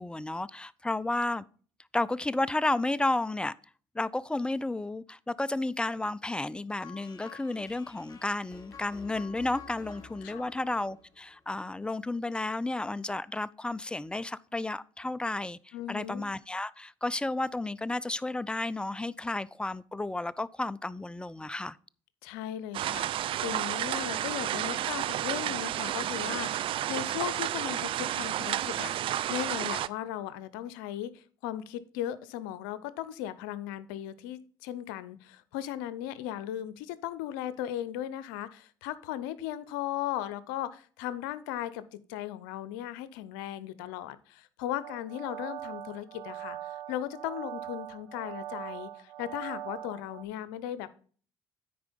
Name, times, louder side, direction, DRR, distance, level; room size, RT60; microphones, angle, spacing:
voice 1, 0.0-1.4 1.9-3.5 3.9-21.8, left 2 dB, 10° left, 0.5 m, -32 dB
sound 1, 6.8-11.8, left 6 dB, 35° left, 1.7 m, -51 dB
voice 2, 15.7-16.3 22.2-50.9, left 12 dB, 85° left, 0.7 m, -37 dB
sound 2, 22.7-29.9, right 12 dB, 55° right, 0.4 m, -31 dB
sound 3, 44.8-50.2, right 12 dB, 85° right, 0.8 m, -41 dB
9.5 x 4.7 x 5.3 m
hypercardioid pair, 65°, 11 cm